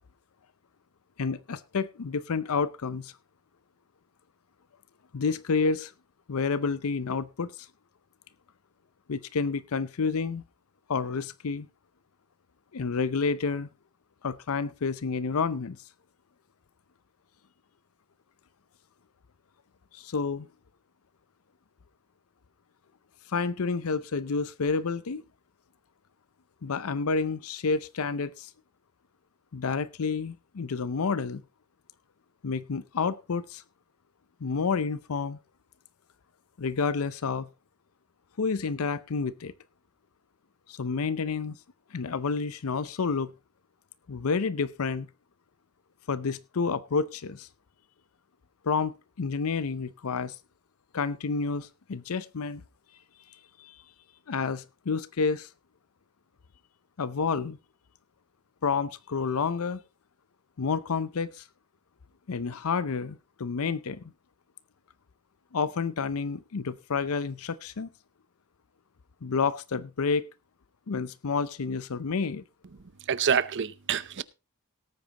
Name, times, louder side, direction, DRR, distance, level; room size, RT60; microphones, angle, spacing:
voice 1, 1.2-3.1 5.1-5.9 6.3-7.7 9.1-10.4 10.9-11.7 12.7-13.7 14.2-15.8 19.9-20.5 23.3-25.2 26.6-28.5 29.5-31.4 32.4-33.6 34.4-35.4 36.6-37.5 38.4-39.5 40.7-41.5 41.9-43.3 44.1-45.1 46.1-47.5 48.6-50.3 50.9-52.6 53.6-53.8 54.3-55.5 57.0-57.6 58.6-59.8 60.6-61.4 62.3-64.0 65.5-67.9 69.2-70.3 70.9-72.4, left 5 dB, 75° left, 0.6 m, -29 dB
voice 2, 73.1-74.2, right 7 dB, 55° right, 0.7 m, -26 dB
18.0 x 9.0 x 2.9 m
head